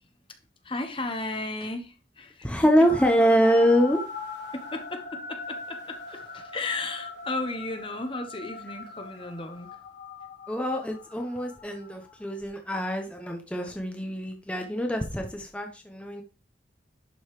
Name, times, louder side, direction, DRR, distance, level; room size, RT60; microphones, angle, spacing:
voice 1, 0.6-2.9 4.5-9.8, left 2 dB, 30° left, 1.1 m, -35 dB
voice 2, 2.4-4.0 10.5-16.2, equal, 5° left, 0.9 m, -24 dB
sound 1, 2.9-12.3, left 4 dB, 80° left, 2.2 m, -41 dB
11.0 x 5.5 x 3.1 m
head